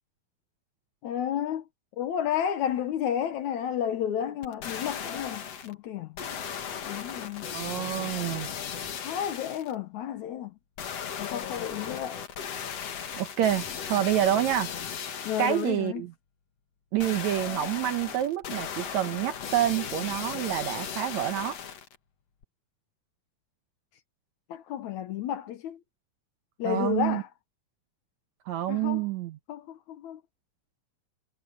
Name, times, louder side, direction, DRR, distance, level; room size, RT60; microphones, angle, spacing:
voice 1, 1.0-1.7 2.0-6.2 6.9-7.5 9.0-10.6 11.2-12.2 15.2-16.0 24.5-25.8 26.6-27.3 28.7-29.1 29.5-30.2, left 9 dB, 70° left, 2.0 m, -31 dB
sound 1, 4.4-5.7 6.2-9.7 10.8-15.8 17.0-22.0 22.4-22.5, left 7 dB, 50° left, 2.6 m, -36 dB
voice 2, 7.5-8.5 13.2-14.7 15.4-16.1 16.9-21.6 26.7-27.2 28.5-29.4, right 12 dB, 70° right, 1.8 m, -27 dB
omnidirectional pair, 4.1 m